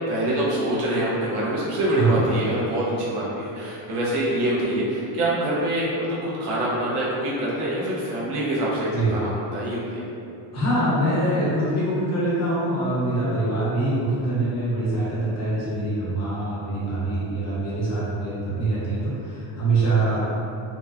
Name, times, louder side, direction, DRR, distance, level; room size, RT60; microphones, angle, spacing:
voice 1, 0.1-10.0, right 1 dB, 75° right, -7 dB, 0.9 m, -25 dB
voice 2, 10.5-20.3, right 2 dB, 30° left, -9 dB, 0.8 m, -24 dB
2.9 x 2.2 x 2.4 m, 2.6 s
cardioid pair, 145°, 49 cm